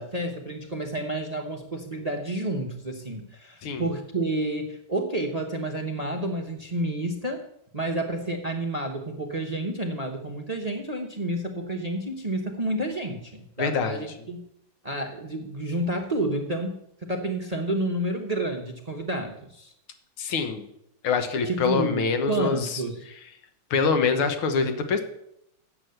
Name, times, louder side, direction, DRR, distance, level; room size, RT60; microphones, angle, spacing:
voice 1, 0.0-7.4 7.7-14.4 14.8-16.7 17.0-19.7 21.4-23.0, right 1 dB, 35° right, 3 dB, 0.6 m, -30 dB
voice 2, 13.6-14.1 20.2-20.7 21.0-22.8 23.7-25.0, left 5 dB, 70° left, 7 dB, 1.9 m, -25 dB
8.3 x 7.6 x 7.8 m, 0.76 s
omnidirectional pair, 2.4 m